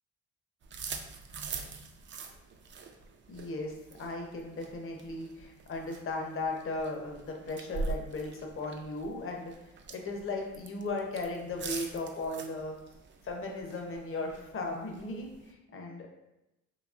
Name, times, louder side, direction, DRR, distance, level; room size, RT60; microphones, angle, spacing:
sound 1, 0.6-15.5, right 4 dB, 40° right, 0.4 m, -44 dB
voice 1, 3.3-3.7 4.0-9.5 9.9-12.8 13.2-16.1, left 2 dB, 45° left, 1 dB, 0.7 m, -36 dB
4.0 x 2.9 x 2.4 m, 0.92 s
cardioid pair, 90°, 30 cm